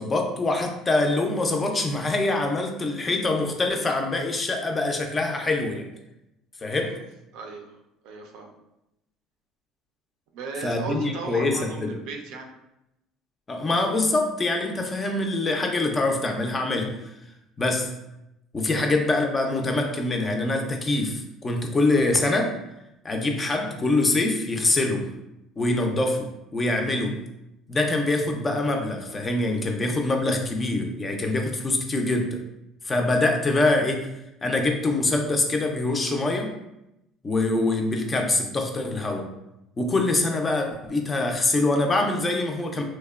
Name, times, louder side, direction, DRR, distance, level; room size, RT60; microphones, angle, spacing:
voice 1, 0.0-5.9 6.6-6.9 10.6-12.0 13.5-16.9 17.6-17.9 18.5-22.6 23.0-25.1 25.6-27.2 27.7-32.4 32.8-34.1 34.4-36.5 37.2-39.3 39.8-42.8, left 2 dB, 25° left, 3 dB, 0.4 m, -24 dB
voice 2, 7.3-7.7 8.0-8.5 10.3-12.5 18.7-18.8, right 4 dB, 75° right, 2 dB, 0.4 m, -36 dB
2.9 x 2.1 x 2.3 m, 0.88 s
supercardioid pair, 100°, 0 cm